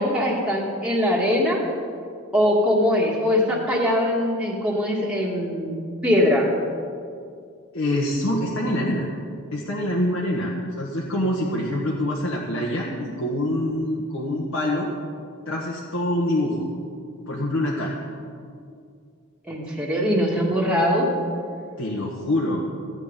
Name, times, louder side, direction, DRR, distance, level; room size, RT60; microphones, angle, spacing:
voice 1, 0.0-1.6 2.3-5.8 6.0-6.5 19.5-21.1, left 1 dB, 5° right, -4 dB, 1.7 m, -21 dB
voice 2, 7.7-9.1 9.5-14.9 15.5-16.7 17.3-18.0 21.8-22.7, left 1 dB, 70° left, -3 dB, 1.6 m, -25 dB
15.0 x 9.3 x 5.3 m, 2.3 s
head